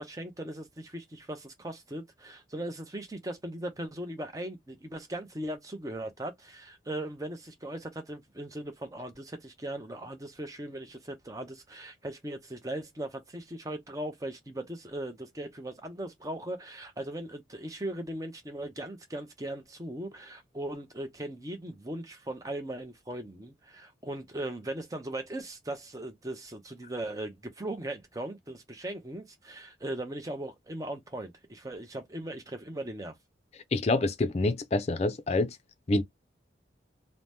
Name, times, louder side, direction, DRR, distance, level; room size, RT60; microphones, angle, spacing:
voice 1, 0.0-33.1, right 1 dB, 20° right, 0.6 m, -38 dB
voice 2, 33.7-35.6 35.9-36.0, left 2 dB, 35° left, 0.4 m, -26 dB
2.8 x 2.0 x 3.3 m
head